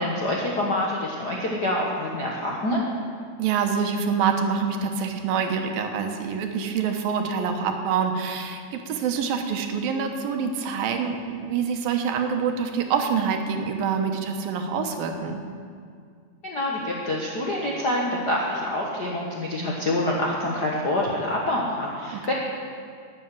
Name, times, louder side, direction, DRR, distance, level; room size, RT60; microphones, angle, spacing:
voice 1, 0.0-2.8 16.4-22.3, left 1 dB, 60° left, -3 dB, 1.0 m, -26 dB
voice 2, 3.4-15.4 22.1-22.3, right 6 dB, 85° right, 5 dB, 2.9 m, -26 dB
12.5 x 8.4 x 9.3 m, 2.2 s
omnidirectional pair, 4.0 m